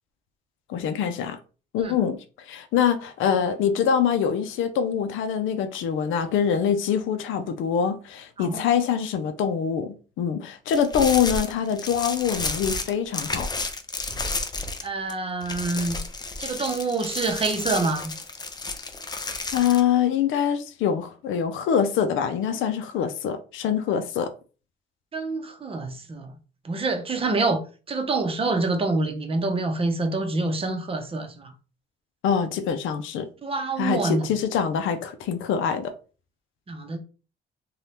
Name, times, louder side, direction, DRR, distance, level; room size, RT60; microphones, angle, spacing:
voice 1, 0.7-1.4 1.7-2.2 2.5-13.5 19.5-24.3 32.2-33.3 33.8-35.9, left 8 dB, 80° left, 0.5 m, -24 dB
sound 1, 10.7-15.1 15.4-19.8, left 3 dB, 20° left, 0.4 m, -32 dB
voice 2, 14.8-16.0 16.4-18.1 25.1-26.3 26.6-27.6 27.9-31.5 33.4-34.3 36.7-37.0, right 3 dB, 30° right, 0.7 m, -26 dB
2.7 x 2.3 x 3.3 m
cardioid pair, 90°, 20 cm